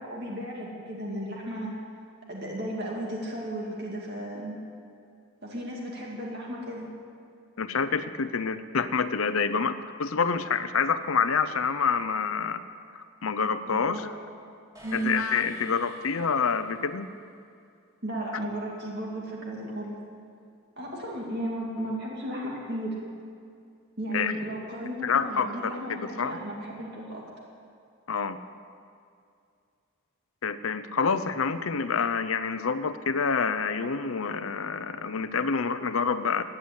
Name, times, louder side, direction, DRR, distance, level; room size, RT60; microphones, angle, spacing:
voice 1, 0.0-1.7 2.3-4.6 5.4-6.9 13.7-14.3 14.8-15.1 18.0-19.9 20.8-23.0 24.0-27.2, right 1 dB, 50° right, -3 dB, 2.3 m, -34 dB
voice 2, 7.6-9.7 10.0-12.6 12.9-14.1 14.9-17.1 24.1-24.3 25.0-26.4 28.1-28.4 30.4-36.4, left 5 dB, 70° left, 12 dB, 0.7 m, -27 dB
sound 1, 14.7-17.0, right 1 dB, 15° right, 3.4 m, -50 dB
17.0 x 10.0 x 8.2 m, 2.4 s
head